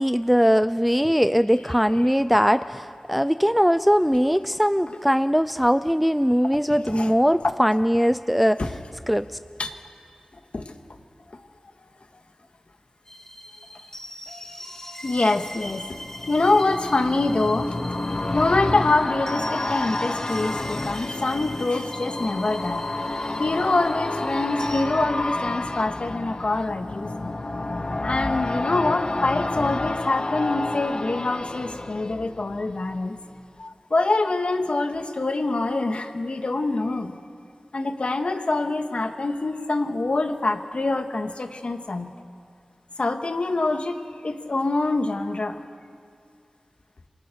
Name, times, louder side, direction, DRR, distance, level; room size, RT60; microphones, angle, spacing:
voice 1, 0.0-8.6 9.1-9.3, equal, ahead, 12 dB, 0.6 m, -20 dB
sound 1, 13.1-24.8, left 1 dB, 20° left, 4.1 m, -41 dB
voice 2, 15.0-15.9 16.3-17.7 18.2-22.8 23.4-27.3 28.0-33.2 33.6-37.2 37.7-42.1 43.0-44.0 44.2-45.6, left 2 dB, 65° left, 5 dB, 2.0 m, -25 dB
sound 2, 15.2-33.0 33.3-33.4, left 2 dB, 45° left, 1.0 m, -30 dB
27.5 x 27.0 x 6.4 m, 2.3 s
wide cardioid pair, 50°, 2 cm